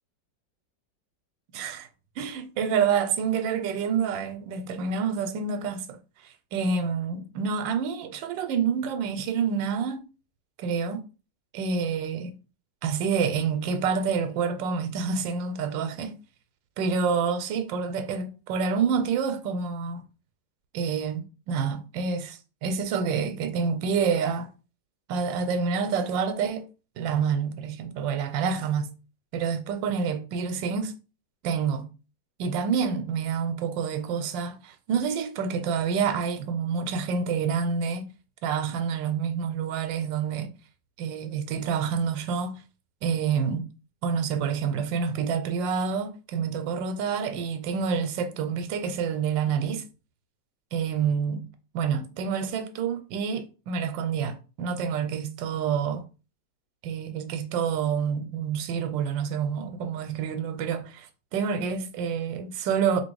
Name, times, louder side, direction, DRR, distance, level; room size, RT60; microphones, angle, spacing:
voice 1, 1.5-1.9 2.2-10.0 10.6-11.0 11.5-12.4 12.8-16.1 16.8-20.0 20.7-24.5 25.1-26.7 27.0-28.9 29.3-30.9 31.4-31.9 32.4-38.1 38.4-40.5 41.0-42.6 43.0-43.7 44.0-49.8 50.7-51.4 51.7-56.0 56.8-63.0, right 6 dB, 90° right, 1.3 m, -28 dB
3.0 x 2.8 x 4.5 m
omnidirectional pair, 1.9 m